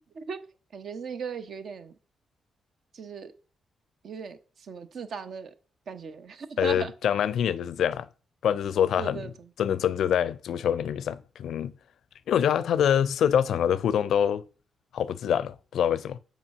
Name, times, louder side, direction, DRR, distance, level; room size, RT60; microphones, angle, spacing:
voice 1, 0.7-2.0 2.9-3.3 4.0-5.5 5.9-6.9 9.0-9.5, right 6 dB, 65° right, 0.9 m, -37 dB
voice 2, 6.6-8.1 8.4-9.3 9.6-11.7 12.3-14.4 14.9-16.2, left 9 dB, 75° left, 0.4 m, -25 dB
6.1 x 4.4 x 5.9 m
hypercardioid pair, 45°, 0 cm